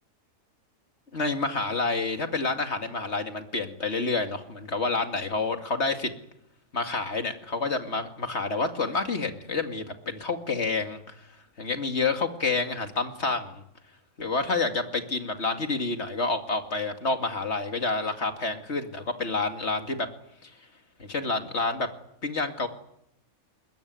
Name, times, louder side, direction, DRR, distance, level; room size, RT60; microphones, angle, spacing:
voice 1, 1.1-6.1 6.7-11.0 11.6-13.6 14.2-20.1 20.4-20.5 21.0-21.9 22.2-22.7, left 3 dB, 50° left, 6 dB, 2.6 m, -28 dB
21.5 x 21.5 x 9.6 m, 0.76 s
omnidirectional pair, 1.5 m